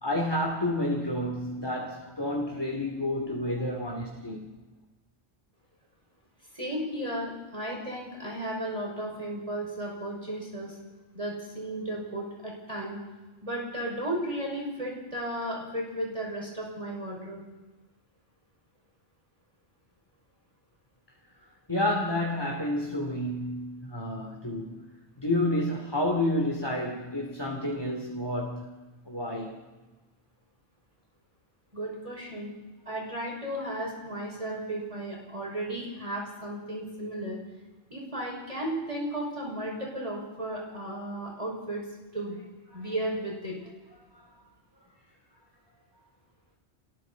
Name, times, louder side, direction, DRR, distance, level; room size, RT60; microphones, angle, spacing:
voice 1, 0.0-4.5 21.7-24.8 25.2-28.7 29.0-29.6 42.7-42.8 44.1-44.3, left 1 dB, 20° left, -1 dB, 3.2 m, -30 dB
voice 2, 6.5-10.8 11.1-13.0 13.4-17.4 31.7-32.5 32.9-37.4 37.9-41.9 42.1-42.4 42.7-43.6, right 1 dB, 30° right, -2 dB, 6.0 m, -34 dB
28.5 x 22.0 x 4.2 m, 1.1 s
omnidirectional pair, 1.1 m